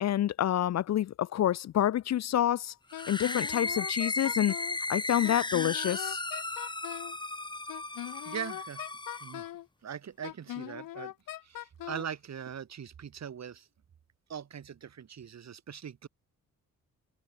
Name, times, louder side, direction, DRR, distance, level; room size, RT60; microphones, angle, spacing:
voice 1, 0.0-2.7 3.1-4.5 4.9-6.2, left 11 dB, 55° left, 0.5 m, -28 dB
Wind instrument woodwind instrument, 2.9-4.8 5.2-7.2 7.7-9.7 10.2-12.1, left 13 dB, 85° left, 1.9 m, -41 dB
sound 1, 2.9-9.5, left 2 dB, 15° left, 2.0 m, -35 dB
voice 2, 8.2-8.9 9.2-9.4 9.8-11.1 11.4-13.7 14.3-16.1, right 8 dB, 55° right, 3.2 m, -41 dB
cardioid pair, 95°, 33 cm